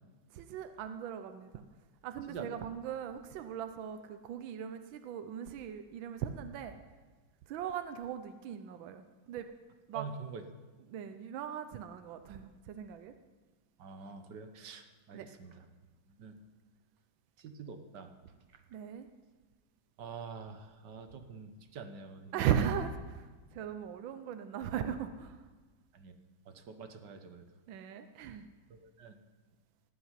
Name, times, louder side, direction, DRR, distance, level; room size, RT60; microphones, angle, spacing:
voice 1, 0.3-1.6 2.0-6.8 7.5-9.5 9.9-10.1 10.9-13.1 15.1-15.3 18.7-19.1 22.3-23.2 23.5-25.4 27.7-28.5, right 8 dB, 80° right, 8 dB, 1.5 m, -38 dB
voice 2, 9.9-10.4 13.8-15.6 16.2-16.3 17.4-18.1 20.0-22.5 25.9-26.1 26.5-27.4 28.7-29.1, right 5 dB, 65° right, 7 dB, 1.6 m, -46 dB
18.0 x 6.0 x 9.6 m, 1.3 s
omnidirectional pair, 2.1 m